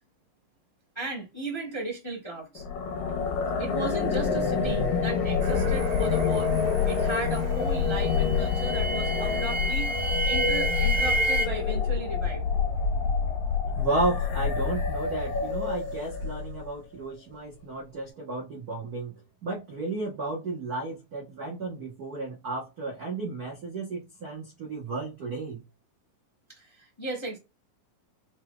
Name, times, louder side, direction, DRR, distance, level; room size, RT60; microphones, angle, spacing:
voice 1, 0.9-2.6 3.6-6.5 6.8-9.9 10.3-12.4 26.6-27.4, right 2 dB, 30° left, 0.5 m, -35 dB
sound 1, 2.6-16.7, left 6 dB, 75° left, 2.3 m, -27 dB
sound 2, 5.4-11.5, right 3 dB, 70° right, 1.6 m, -31 dB
voice 2, 13.6-19.1 19.4-25.6, right 2 dB, 85° right, 0.8 m, -33 dB
5.7 x 3.3 x 2.3 m
omnidirectional pair, 3.5 m